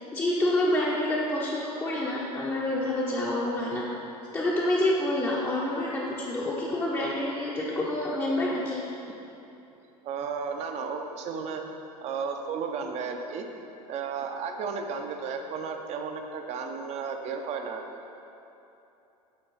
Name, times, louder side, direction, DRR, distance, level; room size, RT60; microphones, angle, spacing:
voice 1, 0.1-4.0 4.3-8.8, left 1 dB, 10° left, -5 dB, 0.7 m, -27 dB
voice 2, 10.0-11.6 12.0-13.4 13.9-17.8, right 5 dB, 30° right, 4 dB, 0.6 m, -33 dB
8.7 x 3.8 x 3.9 m, 2.9 s
figure-of-eight pair, 80°, 21 cm